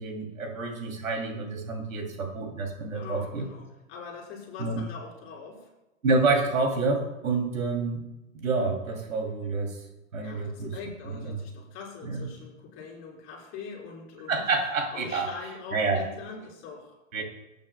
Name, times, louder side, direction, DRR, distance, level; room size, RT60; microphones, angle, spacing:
voice 1, 0.0-3.4 4.6-4.8 6.0-8.0 8.3-9.8 10.1-10.8 11.1-11.4 12.0-12.3 14.3-15.3 15.7-16.0 17.1-17.2, right 3 dB, 85° right, 2 dB, 2.8 m, -28 dB
voice 2, 2.9-5.7 10.2-14.5 14.9-16.9, left 5 dB, 30° left, -3 dB, 3.8 m, -43 dB
19.0 x 8.8 x 2.2 m, 0.98 s
hypercardioid pair, 135°, 39 cm